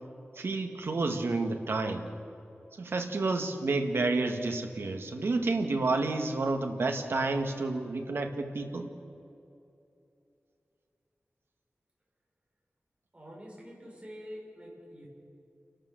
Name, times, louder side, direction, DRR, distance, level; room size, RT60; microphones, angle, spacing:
voice 1, 0.4-2.1 2.8-8.9, right 3 dB, 75° right, 5 dB, 1.9 m, -30 dB
voice 2, 13.1-15.1, equal, 30° right, -3 dB, 6.3 m, -46 dB
29.5 x 12.5 x 7.7 m, 2.7 s
wide cardioid pair, 100°, 4 cm